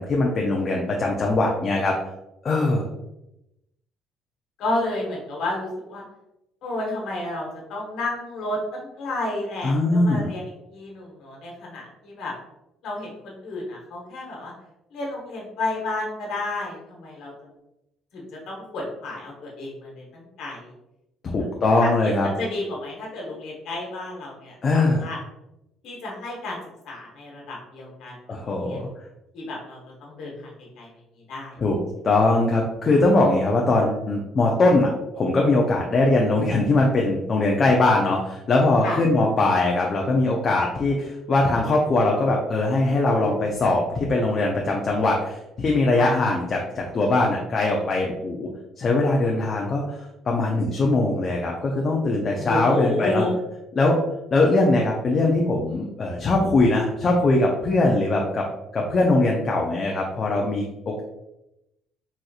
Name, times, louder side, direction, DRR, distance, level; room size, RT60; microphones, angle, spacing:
voice 1, 0.0-2.0 2.4-2.9 9.6-10.3 21.2-22.3 24.6-25.0 28.3-28.9 31.6-31.8 32.0-34.9 35.2-48.5 48.8-50.0 50.3-53.2 53.8-54.0 54.3-58.4 58.7-61.0, left 2 dB, 35° left, -1 dB, 0.5 m, -21 dB
voice 2, 4.6-6.0 6.6-10.4 10.7-12.3 12.8-14.5 14.9-17.5 18.1-20.7 21.2-21.4 21.8-25.2 25.8-26.6 26.8-28.1 28.6-28.8 29.3-30.5 30.8-30.9 31.3-31.6 38.8-39.0 46.0-46.1 52.4-53.3, left 2 dB, 70° left, -2 dB, 1.2 m, -31 dB
4.2 x 2.5 x 2.4 m, 0.88 s
cardioid pair, 115°, 0 cm